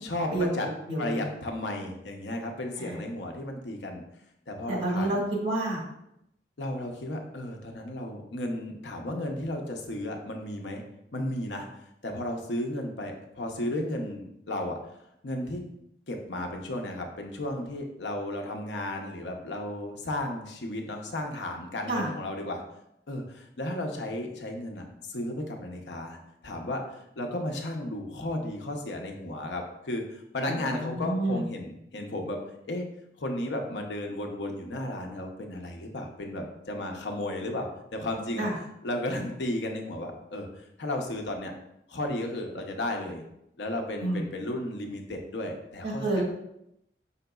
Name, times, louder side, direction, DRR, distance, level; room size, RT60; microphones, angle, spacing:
voice 1, 0.0-0.7 1.0-4.0 4.5-5.2 6.6-10.8 11.1-11.7 12.0-14.8 15.2-15.6 16.1-22.6 23.1-26.2 26.4-32.9 33.2-38.5 38.8-41.5 41.9-43.2 43.6-46.2, left 1 dB, 85° left, 3 dB, 0.7 m, -34 dB
voice 2, 0.9-1.2 2.8-3.0 4.7-5.8 21.9-22.1 30.4-31.4 38.4-38.6 44.0-44.2 45.8-46.2, right 2 dB, 85° right, -3 dB, 1.6 m, -29 dB
5.7 x 3.9 x 2.3 m, 0.80 s
head